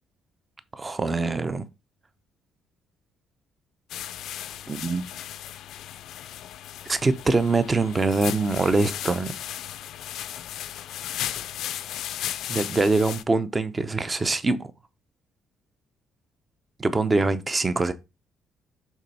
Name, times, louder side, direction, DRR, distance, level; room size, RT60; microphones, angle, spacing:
voice 1, 0.7-1.6 4.7-5.0 6.9-9.3 12.5-14.7 16.8-17.9, right 3 dB, 20° right, 0.6 m, -24 dB
sound 1, 3.9-13.2, left 11 dB, 65° left, 0.5 m, -35 dB
7.2 x 3.4 x 5.4 m
cardioid pair, 160°, 0 cm